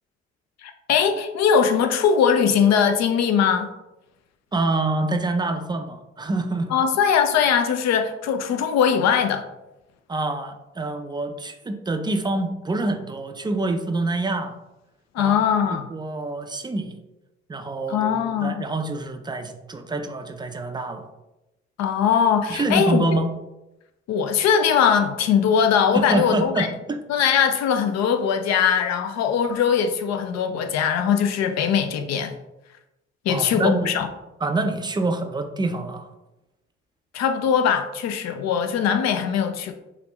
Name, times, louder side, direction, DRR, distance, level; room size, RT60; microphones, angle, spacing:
voice 1, 0.6-3.7 6.7-9.4 15.1-15.9 17.9-18.6 21.8-23.0 24.1-26.7 27.1-32.3 33.3-34.1 37.1-39.7, left 7 dB, 60° left, 8 dB, 0.5 m, -21 dB
voice 2, 4.5-6.7 10.1-14.6 15.2-15.4 15.7-17.0 17.5-18.1 18.4-21.1 22.5-23.3 25.9-27.0 33.3-34.0 34.4-36.0, right 2 dB, 15° right, 7 dB, 0.4 m, -26 dB
3.2 x 2.4 x 2.9 m, 0.96 s
hypercardioid pair, 50°, 30 cm